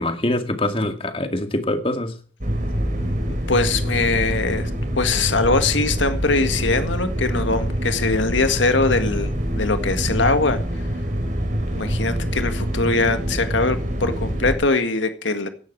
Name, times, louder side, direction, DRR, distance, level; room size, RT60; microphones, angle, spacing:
voice 1, 0.0-2.1, left 1 dB, 30° left, 7 dB, 2.2 m, -24 dB
sound 1, 2.4-14.6, equal, 40° right, 3.9 m, -25 dB
voice 2, 3.3-4.7 5.0-10.6 11.8-15.5, left 3 dB, 85° left, 9 dB, 1.9 m, -22 dB
16.5 x 12.0 x 4.7 m, 0.42 s
head